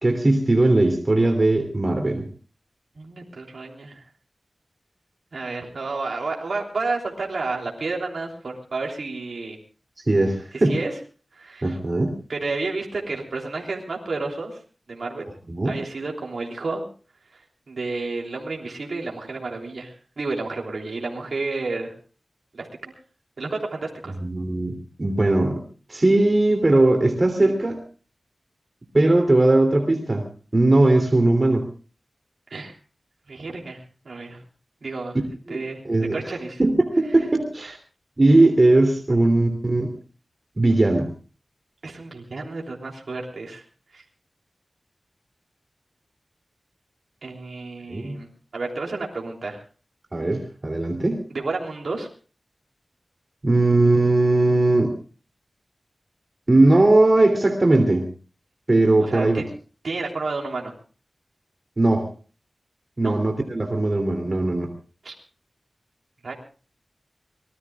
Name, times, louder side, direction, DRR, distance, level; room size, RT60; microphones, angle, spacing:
voice 1, 0.0-2.3 10.1-10.8 11.6-12.1 15.5-15.7 24.2-25.6 25.9-27.8 28.9-30.3 30.5-31.6 35.5-37.8 38.2-39.9 40.6-41.1 47.9-48.2 50.1-51.2 53.4-54.9 56.5-58.0 58.7-59.4 61.8-62.0 63.0-64.7, right 2 dB, 40° right, 4 dB, 3.0 m, -19 dB
voice 2, 2.9-4.0 5.3-9.6 10.5-10.9 11.3-11.8 12.3-14.6 14.9-15.3 15.6-16.8 17.3-21.9 22.5-22.9 23.4-24.2 32.5-32.8 33.3-33.8 34.0-34.4 34.8-35.2 35.5-35.8 36.1-36.6 37.6-37.7 41.8-43.6 43.9-44.0 47.2-48.3 48.5-49.6 51.3-52.1 59.0-59.4 59.8-60.7 63.0-63.2 65.0-65.1 66.2-66.3, right 3 dB, 75° right, 0 dB, 3.3 m, -31 dB
25.0 x 20.5 x 2.4 m, 0.38 s
wide cardioid pair, 65°, 0 cm